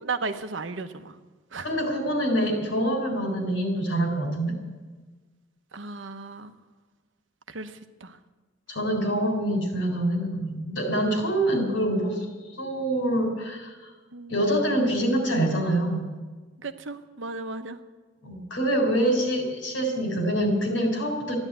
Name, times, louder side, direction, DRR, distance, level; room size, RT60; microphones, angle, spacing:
voice 1, 0.0-1.2 1.5-1.7 5.7-6.5 7.5-8.2 14.1-14.3 16.6-17.8, right 3 dB, 75° right, 9 dB, 1.0 m, -35 dB
voice 2, 1.6-4.5 8.7-12.3 12.6-13.9 14.3-16.0 18.2-21.4, right 1 dB, 75° left, 4 dB, 4.0 m, -25 dB
13.5 x 10.5 x 9.2 m, 1.3 s
head